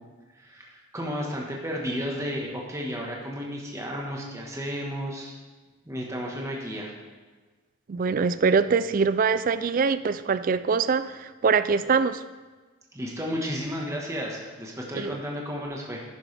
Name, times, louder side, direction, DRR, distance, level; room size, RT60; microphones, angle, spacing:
voice 1, 0.3-5.3 5.9-6.9 12.9-16.0, equal, 15° right, -2 dB, 1.3 m, -33 dB
voice 2, 7.9-12.2 14.9-15.1, right 5 dB, 40° right, 14 dB, 0.3 m, -23 dB
11.0 x 10.0 x 3.4 m, 1.3 s
head